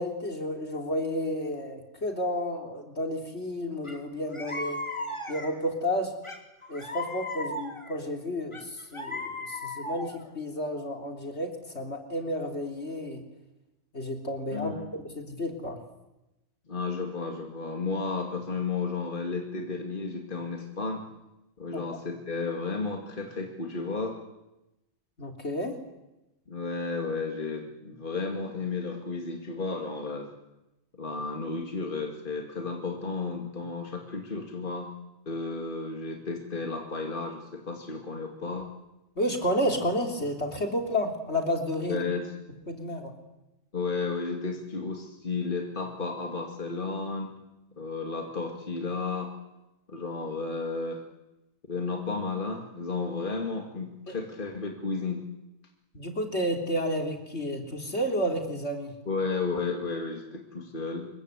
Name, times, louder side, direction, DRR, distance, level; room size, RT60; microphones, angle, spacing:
voice 1, 0.0-4.8 5.3-6.1 6.7-13.2 13.9-14.7 15.1-15.8 21.7-21.8 25.2-25.8 39.2-42.1 42.7-43.2 54.1-54.2 55.9-58.9, equal, 60° left, 3 dB, 3.7 m, -31 dB
sound 1, 3.8-4.0 4.3-5.7 6.2-8.0 8.5-10.3, left 2 dB, 25° left, 3.1 m, -36 dB
voice 2, 14.5-14.8 16.7-21.0 21.6-24.2 26.5-30.3 31.0-34.9 35.3-38.7 41.9-42.3 43.7-47.4 47.8-49.3 49.9-51.0 51.7-55.2 59.1-61.1, left 4 dB, 45° left, 2 dB, 2.6 m, -33 dB
27.0 x 23.0 x 8.2 m, 0.95 s
omnidirectional pair, 1.3 m